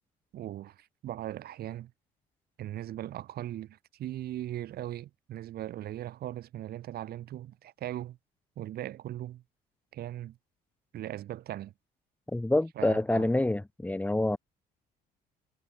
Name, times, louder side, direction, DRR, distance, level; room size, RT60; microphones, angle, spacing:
voice 1, 0.3-1.9 2.6-8.2 8.6-9.4 9.9-10.4 10.9-11.7 12.8-13.3, right 13 dB, 65° right, 6.1 m, -39 dB
voice 2, 12.3-14.4, left 1 dB, 10° left, 7.3 m, -27 dB
cardioid pair, 110°, 17 cm